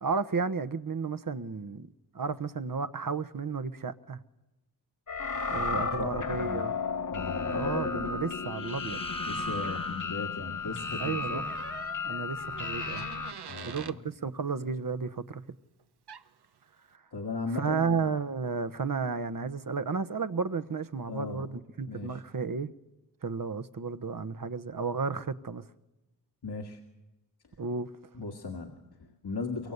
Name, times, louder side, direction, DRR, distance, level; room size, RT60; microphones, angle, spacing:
voice 1, 0.0-4.2 5.5-6.8 7.5-9.0 11.0-11.4 12.0-13.1 13.7-15.4 17.5-22.7 23.2-25.6 27.6-27.9, right 5 dB, 55° right, 1.2 m, -33 dB
sound 1, 5.1-13.3, left 4 dB, 50° left, 1.1 m, -33 dB
voice 2, 5.6-6.7 7.1-7.6 9.3-11.5 13.5-14.0 17.1-18.1 21.1-21.5 21.9-22.2 26.4-26.8 28.1-29.7, left 3 dB, 80° left, 2.0 m, -38 dB
sound 2, 8.4-11.4, left 2 dB, 15° left, 0.8 m, -44 dB
Door, 11.4-14.0 15.8-15.9 16.1-16.5, right 6 dB, 80° right, 0.9 m, -45 dB
23.5 x 23.0 x 8.2 m
cardioid pair, 45°, 39 cm